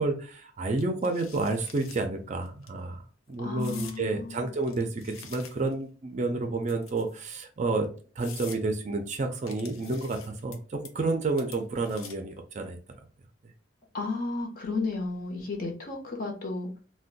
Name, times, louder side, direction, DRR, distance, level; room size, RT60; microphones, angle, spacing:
voice 1, 0.0-3.0 3.3-7.9 8.2-12.8, right 3 dB, 35° right, 0.4 m, -30 dB
sound 1, 0.8-2.0 2.5-2.7 3.6-4.0 4.6-5.8 6.6-7.2 7.7-7.8 8.2-8.6 9.5-10.6 10.8-11.1 11.4-12.3, left 7 dB, 85° left, 0.6 m, -47 dB
voice 2, 3.4-4.5 13.9-16.8, left 3 dB, 45° left, 0.8 m, -33 dB
2.6 x 2.2 x 3.8 m
head